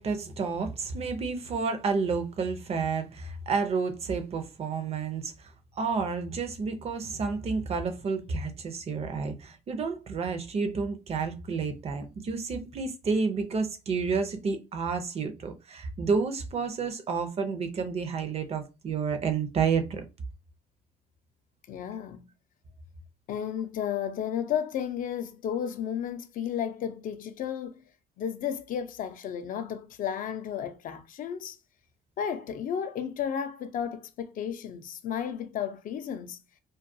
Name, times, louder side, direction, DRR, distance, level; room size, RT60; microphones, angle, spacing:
voice 1, 0.0-20.0, right 5 dB, 35° right, 0.6 m, -30 dB
voice 2, 21.7-22.3 23.3-27.8 28.2-31.6 32.2-36.4, left 8 dB, 55° left, 0.4 m, -33 dB
2.3 x 2.2 x 2.6 m
cardioid pair, 110°, 17 cm